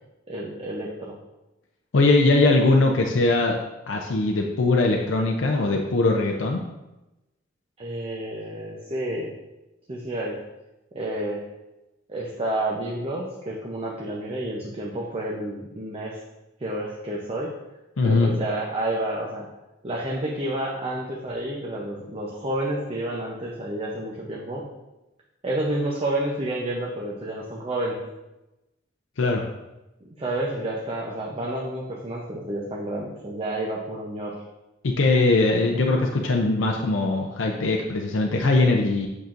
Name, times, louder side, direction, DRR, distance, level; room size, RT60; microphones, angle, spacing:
voice 1, 0.3-1.2 7.8-9.3 9.9-10.4 10.9-11.4 12.1-16.2 16.6-17.5 18.0-19.5 19.8-24.7 25.4-28.0 30.2-34.4, right 1 dB, 30° right, -3 dB, 0.7 m, -30 dB
voice 2, 1.9-3.5 3.9-6.6 18.0-18.3 29.2-29.4 34.8-39.1, left 2 dB, 70° left, 1 dB, 0.6 m, -21 dB
8.0 x 5.9 x 2.5 m, 1.0 s
head